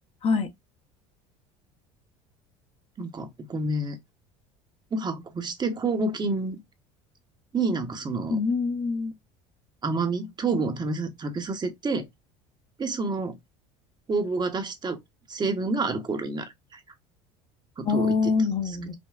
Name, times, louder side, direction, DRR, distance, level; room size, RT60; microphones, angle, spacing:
voice 1, 3.0-4.0 4.9-6.6 7.5-8.4 9.8-12.1 12.8-13.4 14.1-15.0 15.3-16.8 17.8-18.3, right 3 dB, 25° right, 0.9 m, -28 dB
voice 2, 8.3-9.1 17.8-18.9, left 4 dB, 40° left, 0.9 m, -25 dB
5.1 x 2.1 x 2.3 m
supercardioid pair, 90°, 16 cm